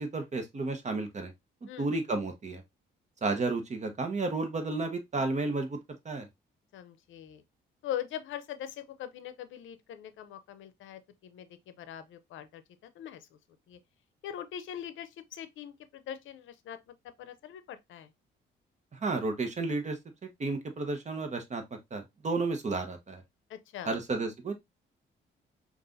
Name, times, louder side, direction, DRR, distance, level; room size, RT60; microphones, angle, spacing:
voice 1, 0.0-1.3 1.6-2.6 3.2-5.8 6.0-6.3 18.9-20.0 20.2-21.6 21.9-23.2 23.9-24.5, right 3 dB, 35° right, 1.1 m, -32 dB
voice 2, 6.7-7.4 7.8-13.3 13.7-13.8 14.2-18.1 23.5-23.9, left 10 dB, 80° left, 0.6 m, -42 dB
5.4 x 2.5 x 2.6 m
cardioid pair, 90°, 20 cm